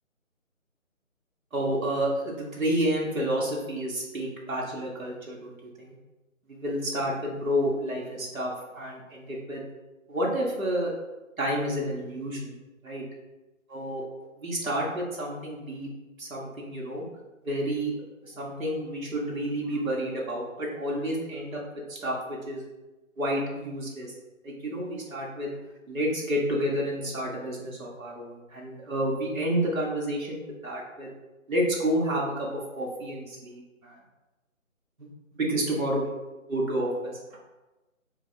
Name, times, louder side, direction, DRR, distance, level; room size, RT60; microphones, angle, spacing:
voice 1, 1.5-5.9 6.5-9.6 10.1-10.9 11.4-12.6 12.8-13.0 13.7-14.0 14.4-15.9 16.2-17.0 17.4-17.9 18.2-21.6 21.9-22.7 23.2-24.1 24.4-25.5 25.9-31.1 31.5-34.0 35.0-36.0 36.5-37.4, equal, 80° right, -3 dB, 1.2 m, -30 dB
4.0 x 2.3 x 4.4 m, 1.1 s
figure-of-eight pair, 155°, 41 cm